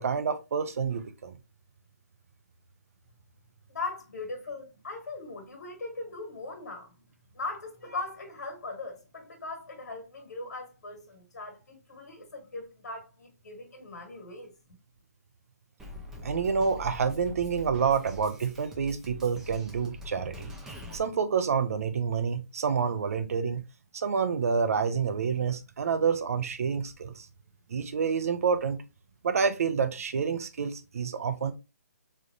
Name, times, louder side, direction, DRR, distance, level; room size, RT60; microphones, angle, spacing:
voice 1, 0.0-1.4 16.2-20.5 20.9-23.6 23.9-27.3 27.7-28.8 29.2-31.5, right 6 dB, 55° right, 0.6 m, -28 dB
voice 2, 3.7-6.9 7.3-14.5, left 3 dB, 75° left, 1.6 m, -39 dB
Drum kit, 15.8-21.0, left 2 dB, 5° right, 0.5 m, -43 dB
3.9 x 3.2 x 2.5 m
hypercardioid pair, 150°, 9 cm